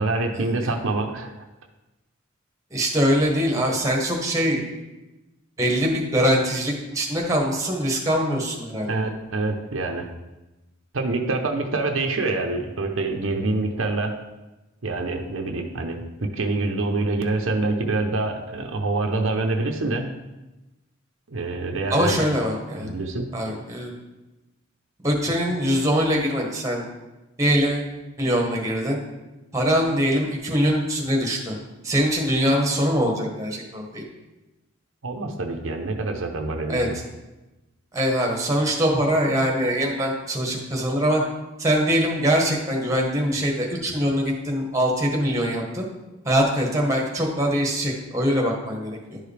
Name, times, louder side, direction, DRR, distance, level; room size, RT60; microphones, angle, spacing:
voice 1, 0.0-1.3 8.9-10.1 10.9-14.1 14.8-20.1 21.3-22.2 22.8-23.3 35.0-37.0, right 2 dB, 75° right, 3 dB, 0.7 m, -26 dB
voice 2, 2.7-4.7 5.6-8.9 21.9-22.9 23.3-23.9 25.0-26.9 27.4-27.9 28.2-29.0 29.5-31.5 31.8-34.0 36.7-36.9 37.9-41.2 41.6-45.9 46.2-49.2, equal, 15° right, -1 dB, 1.2 m, -23 dB
11.0 x 4.8 x 3.4 m, 1.0 s
head